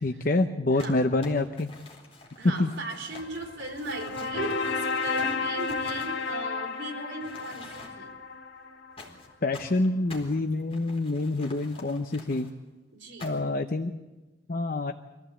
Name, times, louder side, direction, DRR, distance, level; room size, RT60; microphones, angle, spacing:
voice 1, 0.0-1.7 2.4-2.7 9.4-12.5 13.2-13.9 14.5-14.9, left 2 dB, 50° left, 7 dB, 0.8 m, -26 dB
Crumpling crinkling, 0.8-6.8 7.2-8.2 9.0-12.5 13.2-13.6, left 2 dB, 35° left, 4.3 m, -48 dB
voice 2, 2.4-8.1 12.9-13.3, right 2 dB, 90° right, 2 dB, 3.9 m, -38 dB
sound 1, 3.1-9.1, left 4 dB, 75° left, 1.9 m, -32 dB
25.0 x 15.5 x 8.4 m, 1.2 s
head